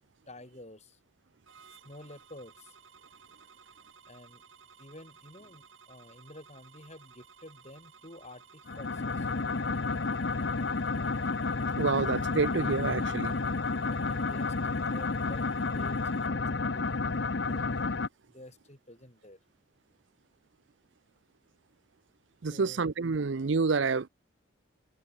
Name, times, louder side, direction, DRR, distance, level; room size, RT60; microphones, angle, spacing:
voice 1, 0.3-1.0 1.7-2.8 4.1-4.4 4.8-9.3 13.8-17.1 17.4-17.7 18.3-19.4 22.5-22.8, left 1 dB, 35° left, 5.9 m, -50 dB
sound 1, 1.5-16.3, right 6 dB, 90° right, 3.2 m, -56 dB
sound 2, 8.7-18.1, left 3 dB, 60° left, 0.8 m, -31 dB
voice 2, 11.8-13.4 22.4-24.1, right 4 dB, 70° right, 0.6 m, -28 dB
head